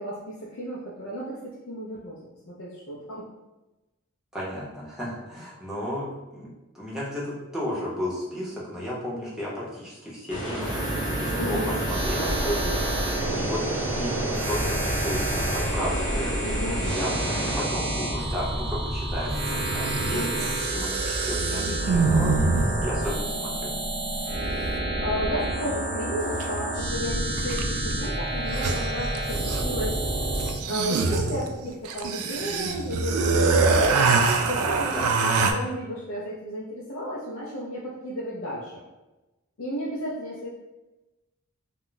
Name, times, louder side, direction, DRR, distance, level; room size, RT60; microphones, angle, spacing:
voice 1, 0.0-2.2 2.5-3.3 11.4-11.7 12.4-12.8 13.2-13.5 16.4-16.9 20.1-20.5 24.6-30.0 30.7-34.0 34.5-38.8 39.6-40.5, equal, 65° left, -5 dB, 0.4 m, -33 dB
voice 2, 4.3-6.5 6.7-12.3 13.3-13.6 14.0-16.3 16.8-17.1 17.5-22.4 22.8-23.7 34.9-35.1, equal, ahead, -7 dB, 0.6 m, -33 dB
sound 1, 10.3-17.6, right 1 dB, 35° left, 0.8 m, -31 dB
sound 2, 10.6-30.6, right 1 dB, 55° right, 0.8 m, -29 dB
sound 3, 18.2-18.3 19.4-23.0 26.4-26.5 27.4-27.8 28.0-28.1 28.4-29.8 30.3-35.5, right 4 dB, 80° right, 0.3 m, -25 dB
2.2 x 2.0 x 3.8 m, 1.1 s
head